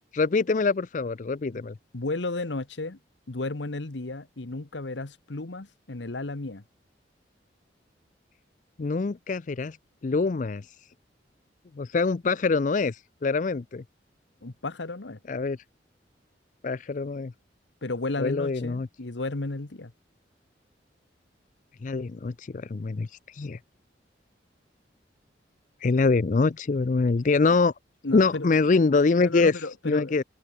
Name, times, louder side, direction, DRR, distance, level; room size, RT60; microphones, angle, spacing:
voice 1, 0.1-1.7 8.8-9.8 10.0-10.6 11.8-13.8 15.3-15.6 16.6-17.3 18.2-18.9 21.8-23.6 25.8-27.7 28.1-29.5 29.9-30.2, left 4 dB, 45° left, 0.4 m, -24 dB
voice 2, 1.9-3.0 3.3-6.6 14.4-15.2 17.8-19.9 28.0-28.5 29.1-30.2, left 2 dB, 80° left, 1.3 m, -33 dB
head